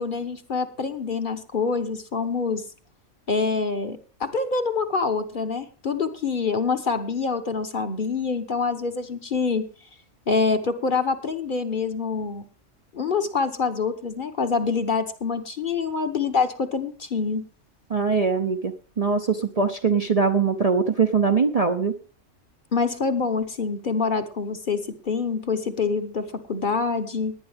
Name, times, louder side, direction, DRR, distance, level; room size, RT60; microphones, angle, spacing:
voice 1, 0.0-2.6 3.3-9.6 10.3-12.4 12.9-17.4 22.7-27.3, left 4 dB, 40° left, 7 dB, 1.2 m, -26 dB
voice 2, 17.9-22.0, right 5 dB, 35° right, 5 dB, 0.7 m, -22 dB
18.5 x 9.9 x 3.5 m, 0.36 s
omnidirectional pair, 1.3 m